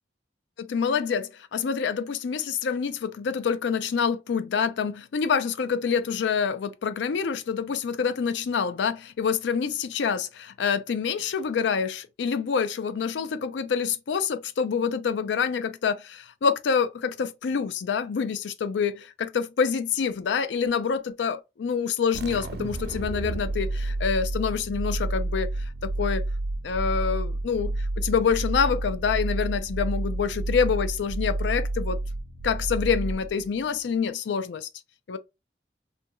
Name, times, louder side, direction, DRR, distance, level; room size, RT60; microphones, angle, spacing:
voice 1, 0.6-25.5 25.8-26.2 26.6-32.0 32.4-34.7 35.1-35.2, left 6 dB, 90° left, 0.4 m, -27 dB
sound 1, 22.1-33.6, right 2 dB, 65° right, 0.4 m, -30 dB
2.5 x 2.3 x 2.6 m
head